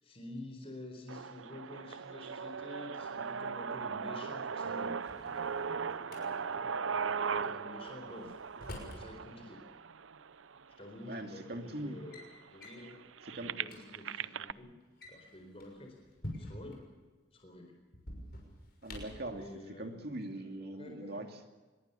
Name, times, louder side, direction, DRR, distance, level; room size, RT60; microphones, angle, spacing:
voice 1, 0.0-6.7 7.3-8.4 8.9-9.6 10.8-12.2 12.5-13.0 13.4-14.7 15.1-15.9 16.4-16.9 17.3-17.8 19.3-21.3, left 1 dB, 30° left, 2 dB, 4.2 m, -49 dB
sound 1, 1.1-11.0 11.7-11.8 12.0-14.5, right 6 dB, 80° right, 0.6 m, -38 dB
Drawer open or close, 4.8-6.2 7.9-9.0 10.3-10.4 11.2-11.5 11.8-12.3 12.6-12.9 13.3-13.4 13.6-13.8 14.8-16.8 17.9-19.3, left 1 dB, 50° left, 6.3 m, -46 dB
voice 2, 11.1-12.0 13.2-13.5 18.8-19.4 19.8-21.5, right 1 dB, 50° right, 4 dB, 2.5 m, -41 dB
24.5 x 21.5 x 7.0 m, 1.2 s
head